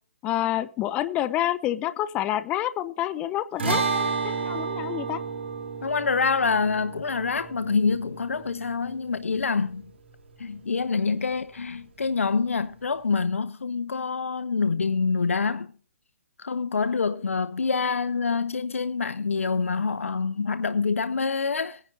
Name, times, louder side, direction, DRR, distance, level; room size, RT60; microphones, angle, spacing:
voice 1, 0.2-5.2, left 13 dB, 15° left, 0.5 m, -28 dB
sound 1, 3.6-10.1, right 4 dB, 60° right, 3.4 m, -31 dB
voice 2, 5.8-9.9 10.4-15.7 16.4-21.8, left 4 dB, 85° left, 0.7 m, -26 dB
17.5 x 10.0 x 2.7 m
hypercardioid pair, 150°, 7 cm